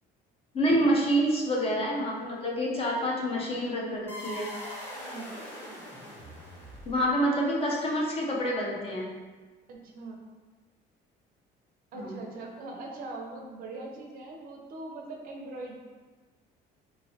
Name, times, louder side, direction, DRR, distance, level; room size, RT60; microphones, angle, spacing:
voice 1, 0.5-4.5 6.9-9.1 11.9-12.1, equal, 30° left, -2 dB, 0.6 m, -27 dB
sound 1, 4.1-7.2, equal, 10° left, 1.0 m, -41 dB
voice 2, 4.9-5.4 9.7-10.2 11.9-15.8, right 2 dB, 50° right, 1 dB, 0.5 m, -41 dB
3.0 x 2.7 x 2.7 m, 1.3 s
cardioid pair, 140°, 19 cm